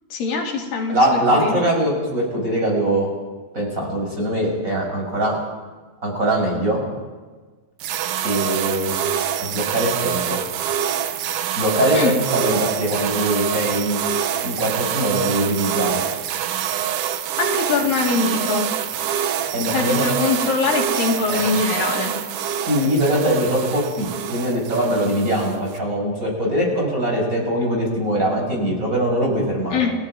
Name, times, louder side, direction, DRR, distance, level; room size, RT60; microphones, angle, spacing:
voice 1, 0.1-1.5 11.9-12.1 17.4-18.7 19.7-22.1 29.7-29.9, left 4 dB, 85° left, 0 dB, 4.5 m, -22 dB
voice 2, 0.9-3.1 3.5-5.4 6.0-6.8 8.2-9.0 9.4-10.4 11.6-14.0 14.4-16.0 19.5-20.1 21.3-21.5 22.4-29.9, right 1 dB, 20° right, -1 dB, 6.3 m, -22 dB
sound 1, 7.8-25.8, right 9 dB, 75° right, 2.5 m, -26 dB
29.5 x 19.5 x 4.9 m, 1.3 s
omnidirectional pair, 3.9 m